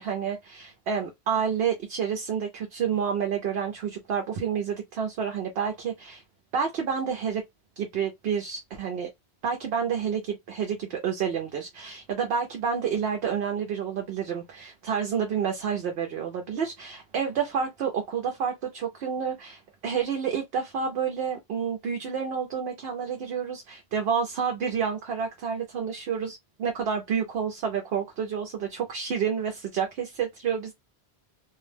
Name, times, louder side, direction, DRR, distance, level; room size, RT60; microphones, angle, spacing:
voice 1, 0.0-6.2 6.5-7.4 7.8-9.1 9.4-30.7, right 7 dB, 70° right, 0.8 m, -29 dB
2.6 x 2.0 x 3.2 m
omnidirectional pair, 1.1 m